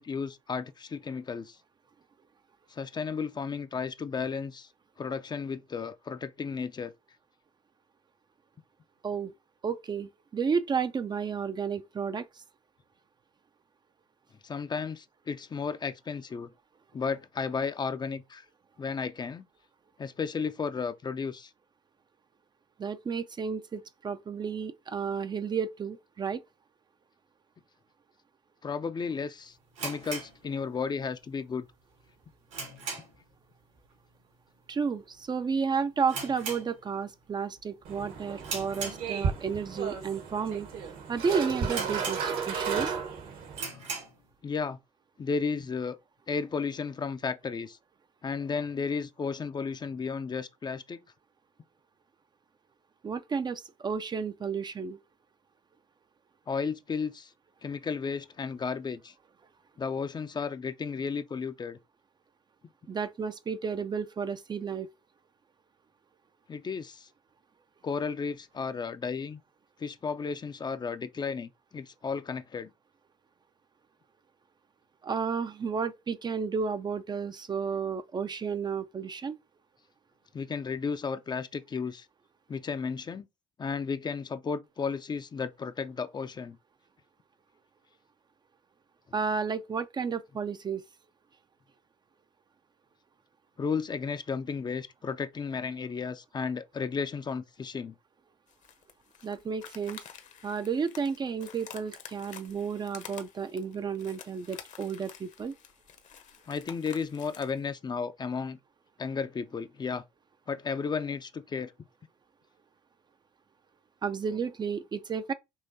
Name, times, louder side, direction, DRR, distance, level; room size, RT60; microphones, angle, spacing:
voice 1, 0.0-1.6 2.7-4.7 5.0-6.9 14.4-16.5 16.9-18.4 18.8-19.5 20.0-21.5 28.6-31.7 43.7-43.9 44.4-44.8 45.2-46.0 46.3-47.8 48.2-51.0 56.5-57.3 57.6-59.1 59.8-61.8 66.5-67.1 67.8-69.4 69.8-72.7 80.3-82.1 82.5-83.3 83.6-86.6 93.6-97.9 106.5-108.6 109.0-110.0 110.5-111.7, left 5 dB, 30° left, 0.5 m, -33 dB
voice 2, 9.6-12.3 22.8-26.4 34.7-42.9 53.0-55.0 62.9-64.9 75.0-79.4 89.1-90.8 99.2-100.0 100.4-105.5 114.0-115.3, right 6 dB, 30° right, 0.5 m, -32 dB
sound 1, 29.7-31.1 31.4-31.5 32.0-33.3 33.6-33.9 34.2-34.3 35.0-35.3 35.5-35.6 36.0-37.2 37.6-37.9 38.4-39.5 40.1-40.2 40.8-40.9 41.1-41.2 41.7-42.6 43.0-43.1 43.5-44.2, right 4 dB, 85° right, 2.4 m, -38 dB
sound 2, 37.8-43.6, right 6 dB, 65° right, 1.3 m, -34 dB
sound 3, 98.5-107.6, left 8 dB, 50° left, 1.0 m, -49 dB
5.5 x 2.9 x 2.7 m
hypercardioid pair, 65°, 16 cm